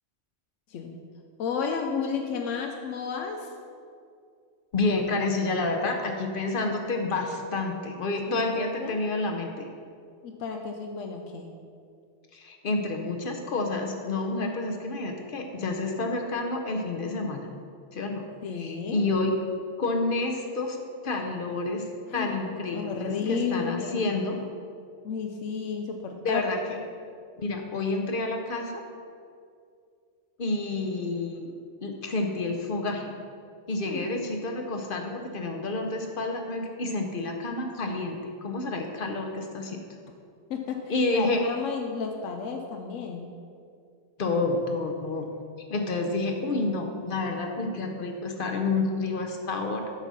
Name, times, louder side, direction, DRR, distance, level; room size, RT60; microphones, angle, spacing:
voice 1, 1.4-3.5 8.3-9.0 10.2-11.5 18.4-19.0 22.1-22.3 22.7-24.2 25.0-26.4 33.9-34.0 40.5-43.3, left 6 dB, 90° left, 3 dB, 1.0 m, -32 dB
voice 2, 4.7-9.7 12.3-17.5 17.9-18.3 18.5-19.3 19.8-20.8 21.0-21.9 22.1-24.4 26.2-26.8 27.4-28.8 30.4-31.5 31.8-33.1 33.7-39.8 40.9-41.5 44.2-45.3 45.7-49.9, left 3 dB, 50° left, 3 dB, 0.8 m, -29 dB
8.1 x 4.0 x 6.0 m, 2.3 s
omnidirectional pair, 1.3 m